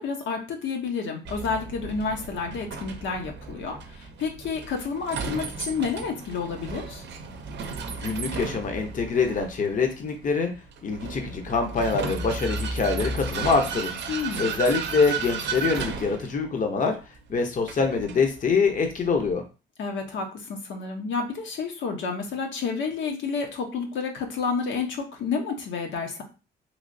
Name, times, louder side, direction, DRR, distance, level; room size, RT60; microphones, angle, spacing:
voice 1, 0.0-7.0 14.1-14.5 19.8-26.2, left 5 dB, 75° left, 2 dB, 0.9 m, -30 dB
Vehicle, 1.2-19.3, right 4 dB, 60° right, 0.6 m, -35 dB
voice 2, 7.9-10.5 10.8-14.0 14.4-17.0 17.3-19.4, left 4 dB, 40° left, 4 dB, 0.7 m, -25 dB
3.1 x 2.9 x 2.6 m, 0.32 s
cardioid pair, 90°, 20 cm